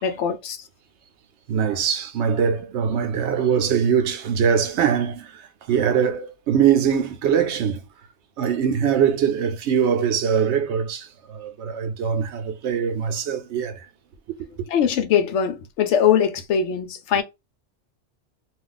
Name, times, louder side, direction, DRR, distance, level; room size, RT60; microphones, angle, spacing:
voice 1, 0.0-0.6 14.7-17.2, left 8 dB, 90° left, 0.9 m, -21 dB
voice 2, 1.5-5.3 5.7-7.8 8.4-13.7, right 7 dB, 80° right, 0.9 m, -22 dB
2.4 x 2.4 x 3.8 m
omnidirectional pair, 1.1 m